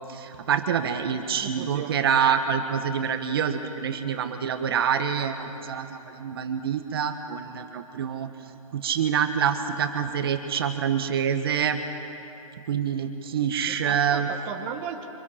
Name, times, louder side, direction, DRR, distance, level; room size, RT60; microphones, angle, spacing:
voice 1, 0.1-8.3 8.7-11.8 12.7-14.3, right 8 dB, 40° right, 7 dB, 1.4 m, -26 dB
voice 2, 1.4-2.0 13.7-15.0, right 8 dB, 20° right, 3 dB, 1.3 m, -36 dB
27.0 x 25.5 x 5.8 m, 3.0 s
hypercardioid pair, 165°, 19 cm